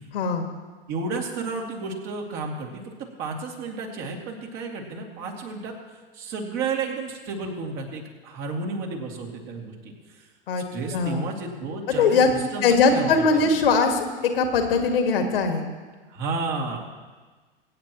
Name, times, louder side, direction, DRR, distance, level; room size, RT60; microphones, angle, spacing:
voice 1, 0.1-0.5 10.5-10.6 10.9-11.2 12.0-12.3 12.6-15.6, left 4 dB, 65° left, 4 dB, 1.8 m, -21 dB
voice 2, 0.9-2.8 3.2-5.7 6.1-10.3 10.7-13.5 16.1-16.9, right 3 dB, 45° right, 1 dB, 2.5 m, -32 dB
23.5 x 8.9 x 3.0 m, 1.4 s
figure-of-eight pair, 100°, 30 cm